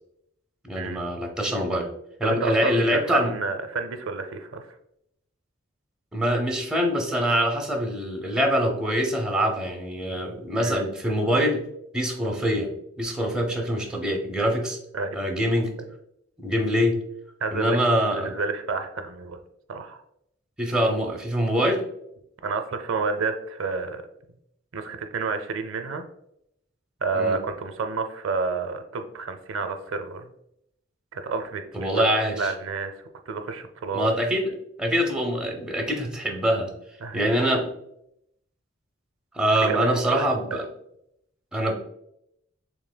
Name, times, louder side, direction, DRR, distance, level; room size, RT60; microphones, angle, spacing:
voice 1, 0.6-1.9 2.2-3.3 6.1-11.6 11.9-12.7 13.0-14.8 15.1-15.7 16.4-17.0 17.5-18.4 20.6-21.8 27.1-27.4 31.7-32.5 33.9-36.7 37.1-37.6 39.3-40.7 41.5-41.7, equal, 5° right, 1 dB, 0.7 m, -24 dB
voice 2, 2.2-4.7 10.6-10.8 14.9-15.2 17.4-17.8 18.1-19.4 19.7-20.0 22.4-24.0 24.7-26.0 27.0-30.3 31.1-32.9 33.3-34.1 37.0-37.4 39.6-40.6, right 4 dB, 80° right, 7 dB, 0.5 m, -30 dB
7.0 x 3.0 x 2.2 m, 0.76 s
head